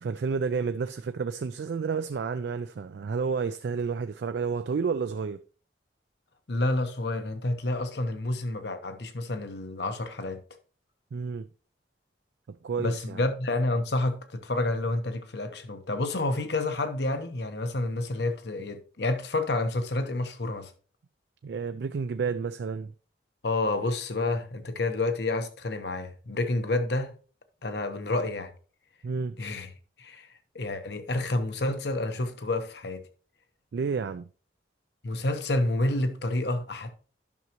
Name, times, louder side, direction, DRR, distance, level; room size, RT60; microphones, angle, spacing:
voice 1, 0.0-5.4 11.1-11.5 12.5-13.2 21.4-22.9 29.0-29.4 33.7-34.3, right 5 dB, 65° right, 0.3 m, -30 dB
voice 2, 6.5-10.4 12.8-20.7 23.4-27.1 27.6-28.5 29.4-29.7 30.0-30.3 30.5-33.0 35.0-36.9, left 2 dB, 65° left, 1.0 m, -29 dB
11.0 x 6.1 x 2.9 m
head